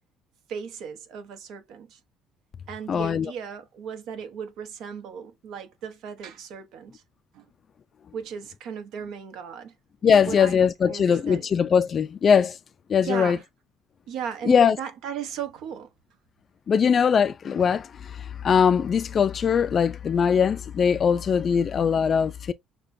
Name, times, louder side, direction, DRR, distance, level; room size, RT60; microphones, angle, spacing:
voice 1, 0.5-2.0 2.7-7.0 7.3-7.5 8.1-9.7 10.3-11.5 13.0-13.4 14.1-15.9, right 7 dB, 70° right, 1.0 m, -36 dB
voice 2, 2.9-3.3 10.0-12.6 12.9-13.4 14.5-14.8 16.7-22.5, left 7 dB, 35° left, 0.3 m, -21 dB
6.4 x 2.2 x 2.6 m
cardioid pair, 130°, 0 cm